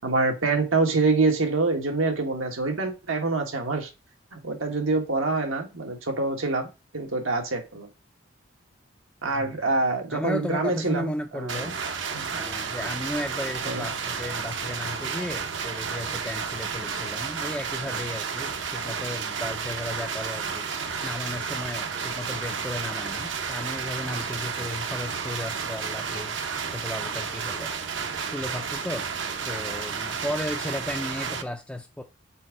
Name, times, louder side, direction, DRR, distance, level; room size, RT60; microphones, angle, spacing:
voice 1, 0.0-3.9 4.3-6.7 6.9-7.9 9.2-11.7 12.1-12.3 13.7-13.9, right 3 dB, 90° right, 1.5 m, -26 dB
voice 2, 10.1-11.8 12.3-26.4 26.7-28.0 28.3-29.1 29.5-32.0, left 1 dB, 5° left, 0.3 m, -34 dB
sound 1, 11.5-31.4, right 6 dB, 65° right, 0.8 m, -32 dB
4.5 x 4.4 x 4.7 m
head